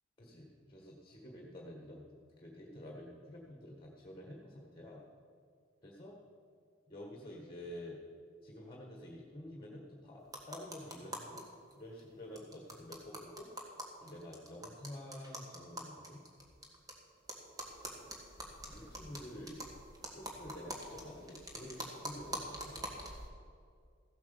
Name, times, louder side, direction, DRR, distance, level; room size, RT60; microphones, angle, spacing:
voice 1, 0.2-2.0 2.4-5.0 5.8-6.2 6.9-8.0 8.4-11.4 11.7-13.5 14.0-16.2 18.6-19.6 20.1-22.9, left 1 dB, 25° left, 0 dB, 1.7 m, -49 dB
sound 1, 10.3-11.4 11.7-11.8 12.0-12.1 12.4-16.9 17.3-23.3, right 1 dB, 20° right, 1.9 m, -45 dB
15.5 x 8.2 x 7.0 m, 2.2 s
head